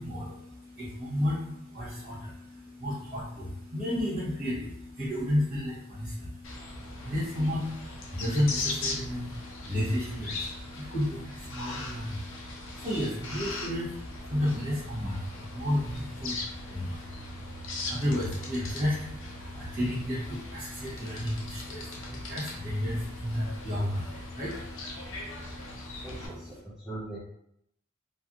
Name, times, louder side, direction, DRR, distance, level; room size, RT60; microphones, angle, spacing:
voice 1, 0.0-26.6, left 1 dB, 35° right, -13 dB, 1.0 m, -33 dB
sound 1, 6.4-26.3, left 2 dB, 65° left, 0.6 m, -40 dB
voice 2, 26.0-27.2, right 2 dB, ahead, -10 dB, 0.5 m, -40 dB
3.2 x 2.6 x 2.4 m, 0.78 s
head